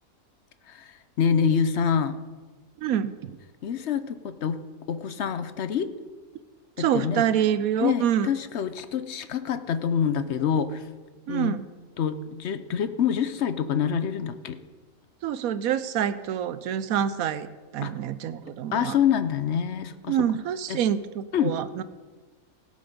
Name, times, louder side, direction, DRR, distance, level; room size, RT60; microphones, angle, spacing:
voice 1, 0.7-2.2 3.6-4.6 4.9-5.9 6.8-7.3 7.8-10.9 11.3-11.6 12.0-14.6 17.8-17.9 18.7-20.3 20.7-20.8 21.3-21.6, left 7 dB, 60° left, 11 dB, 0.8 m, -26 dB
voice 2, 2.8-3.4 6.8-8.3 11.3-11.6 15.2-17.5 17.7-19.0 20.1-21.8, right 9 dB, 75° right, 13 dB, 1.1 m, -26 dB
17.0 x 7.0 x 5.1 m, 1.3 s
omnidirectional pair, 1.5 m